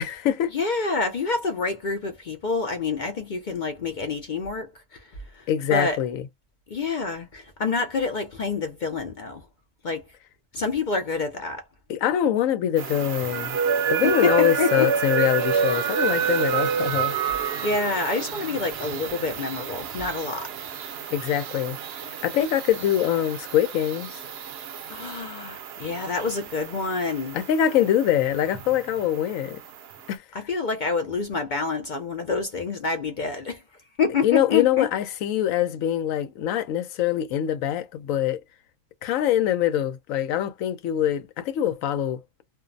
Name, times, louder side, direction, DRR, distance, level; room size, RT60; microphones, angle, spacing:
voice 1, 0.0-0.5 5.5-6.2 11.9-13.6 13.9-17.1 21.1-21.8 22.2-24.2 27.3-29.6 30.1-30.2 34.2-38.4 39.0-42.2, left 11 dB, 80° left, 1.0 m, -24 dB
voice 2, 0.5-5.0 5.3-6.0 6.7-9.4 9.8-10.0 10.5-11.6 14.0-14.9 17.6-20.5 24.9-27.4 30.3-33.6 34.0-34.9, left 4 dB, 65° left, 0.5 m, -27 dB
sound 1, 12.8-30.1, right 7 dB, 60° right, 0.7 m, -29 dB
sound 2, 15.4-25.2, right 9 dB, 80° right, 1.0 m, -44 dB
2.5 x 2.0 x 2.5 m
omnidirectional pair, 1.4 m